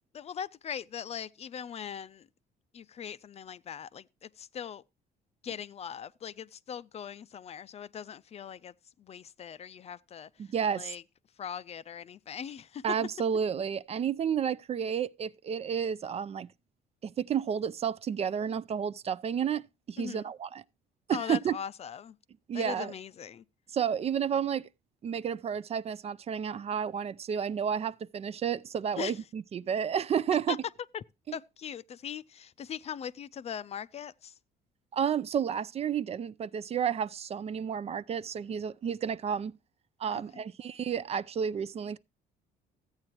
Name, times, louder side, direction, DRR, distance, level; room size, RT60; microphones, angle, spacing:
voice 1, 0.1-2.3 2.7-4.8 5.4-8.7 9.0-10.3 10.7-11.0 11.4-12.8 20.0-20.3 21.1-22.2 22.5-23.4 29.0-29.2 30.5-30.6 30.9-31.0 31.3-34.3 40.1-40.4, left 8 dB, 40° left, 0.5 m, -40 dB
voice 2, 10.4-10.9 12.8-16.5 17.0-20.6 21.1-21.6 22.5-22.9 23.7-24.6 25.0-30.6 31.3-31.4 34.9-39.5 40.0-42.0, right 8 dB, 40° right, 0.4 m, -31 dB
14.0 x 8.7 x 3.0 m
cardioid pair, 110°, 17 cm